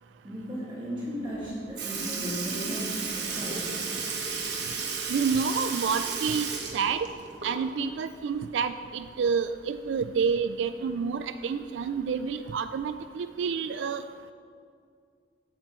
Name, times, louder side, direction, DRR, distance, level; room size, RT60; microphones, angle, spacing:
voice 1, 0.2-3.6, equal, 25° right, -8 dB, 2.0 m, -36 dB
Sink (filling or washing) / Liquid, 1.3-1.4 1.8-7.9 8.2-8.3 9.9-10.0 10.9-11.0 11.8-12.0 12.8-12.9, right 5 dB, 70° right, 1.3 m, -33 dB
voice 2, 5.1-7.1 7.4-14.0, right 6 dB, 90° right, 11 dB, 0.3 m, -29 dB
14.5 x 8.8 x 3.1 m, 2.3 s
head